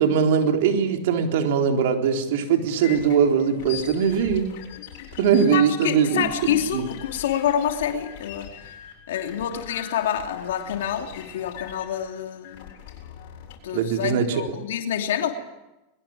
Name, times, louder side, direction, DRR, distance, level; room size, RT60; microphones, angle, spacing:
voice 1, 0.0-4.5 5.2-6.9 13.7-14.4, right 7 dB, 70° right, 4 dB, 3.9 m, -21 dB
sound 1, 2.8-13.6, left 10 dB, 60° left, 7.7 m, -41 dB
voice 2, 5.5-8.7 9.1-12.8 13.6-15.3, left 9 dB, 80° left, 4 dB, 2.9 m, -27 dB
22.5 x 22.5 x 8.9 m, 1.0 s
supercardioid pair, 130°, 0 cm